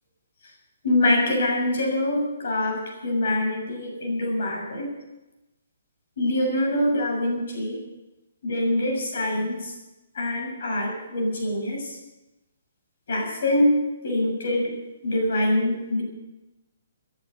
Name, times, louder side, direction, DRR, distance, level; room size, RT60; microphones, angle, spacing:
voice 1, 0.8-4.9 6.2-7.8 8.4-9.7 10.2-12.0 13.1-14.7 15.0-16.0, left 1 dB, 55° left, 1 dB, 7.0 m, -24 dB
19.5 x 10.5 x 6.5 m, 1.0 s
hypercardioid pair, 175°, 0 cm